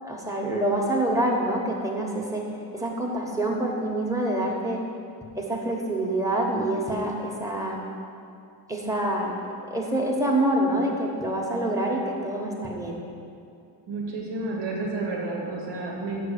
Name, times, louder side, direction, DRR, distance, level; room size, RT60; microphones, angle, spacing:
voice 1, 0.0-2.4 2.7-4.8 5.3-7.8 8.7-9.3 9.7-13.0, right 1 dB, 10° right, -1 dB, 1.3 m, -26 dB
voice 2, 13.9-16.2, right 2 dB, 80° right, -1 dB, 1.7 m, -31 dB
6.7 x 6.1 x 6.7 m, 2.5 s
cardioid pair, 105°, 42 cm